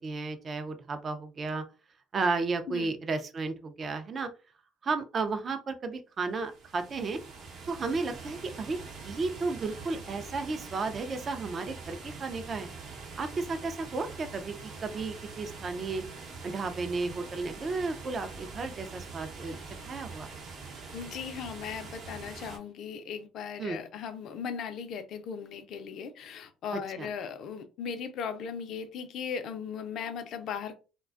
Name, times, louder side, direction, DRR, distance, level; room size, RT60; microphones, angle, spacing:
voice 1, 0.0-1.6 2.1-4.3 4.8-7.2 7.7-12.7 13.2-16.0 16.4-19.6 19.8-20.3 23.6-23.8 26.7-27.1, right 3 dB, 40° right, 8 dB, 0.4 m, -33 dB
sound 1, 6.3-22.6, right 4 dB, 65° right, 0.7 m, -44 dB
voice 2, 20.9-30.7, left 7 dB, 65° left, 9 dB, 0.4 m, -38 dB
2.4 x 2.2 x 2.4 m, 0.32 s
supercardioid pair, 80°, 0 cm